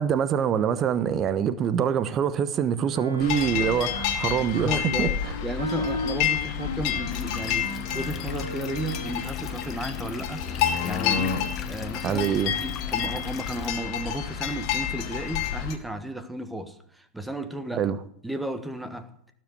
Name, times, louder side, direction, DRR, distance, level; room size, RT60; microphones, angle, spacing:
voice 1, 0.0-5.1 12.0-12.5 17.8-18.0, right 8 dB, 30° right, 1.0 m, -25 dB
Wind instrument woodwind instrument, 2.9-9.3, left 1 dB, 80° right, 4.3 m, -35 dB
sound 1, 3.2-15.8, left 9 dB, 40° left, 2.4 m, -29 dB
voice 2, 4.4-5.1 5.4-10.4 10.8-11.4 11.7-12.3 12.6-17.9 18.2-19.2, right 1 dB, 5° right, 1.5 m, -34 dB
sound 2, 7.1-13.7, left 10 dB, 25° left, 1.1 m, -39 dB
18.0 x 7.8 x 8.3 m
figure-of-eight pair, 90°, 0 cm